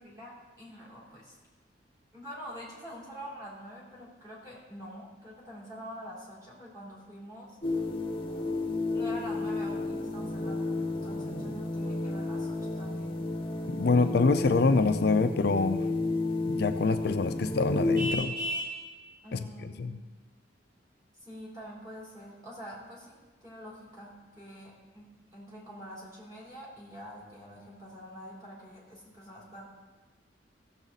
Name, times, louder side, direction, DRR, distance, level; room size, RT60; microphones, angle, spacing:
voice 1, 0.0-1.4 2.1-7.6 8.9-13.2 13.9-14.2 19.2-19.9 21.2-23.2 23.4-25.1 25.3-29.7, equal, 20° right, -6 dB, 3.4 m, -45 dB
sound 1, 7.6-18.1, left 2 dB, 30° left, 0.9 m, -32 dB
voice 2, 13.7-15.8 16.5-18.3 19.3-20.0, left 4 dB, 60° left, 8 dB, 0.5 m, -26 dB
Vehicle horn car horn honking, 18.0-18.8, equal, 50° right, 2.3 m, -33 dB
15.5 x 7.2 x 4.0 m, 1.3 s
head